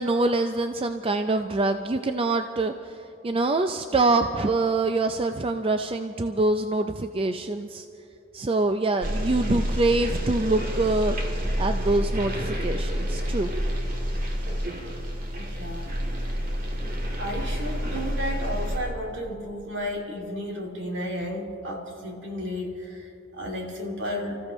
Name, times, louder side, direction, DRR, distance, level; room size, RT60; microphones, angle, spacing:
voice 1, 0.0-2.7 3.2-7.8 8.3-11.2 11.6-13.5, right 2 dB, 30° right, 7 dB, 0.4 m, -25 dB
sound 1, 9.0-18.8, equal, 45° right, 1.9 m, -29 dB
voice 2, 15.3-15.9 16.3-16.4 17.2-24.5, equal, 65° right, 0 dB, 2.6 m, -33 dB
30.0 x 15.0 x 3.1 m, 2.6 s
head